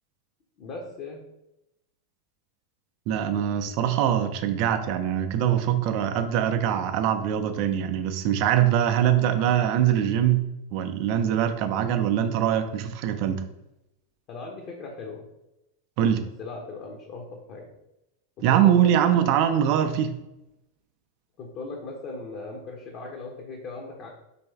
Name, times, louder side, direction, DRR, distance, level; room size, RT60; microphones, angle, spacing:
voice 1, 0.6-1.2 14.3-15.3 16.4-17.7 18.4-19.2 21.4-24.1, left 3 dB, 40° left, -1 dB, 0.7 m, -38 dB
voice 2, 3.1-10.4 10.7-13.4 16.0-16.2 18.4-20.1, right 10 dB, 45° right, 8 dB, 0.4 m, -23 dB
4.1 x 3.0 x 3.4 m, 0.89 s
figure-of-eight pair, 90°, 0 cm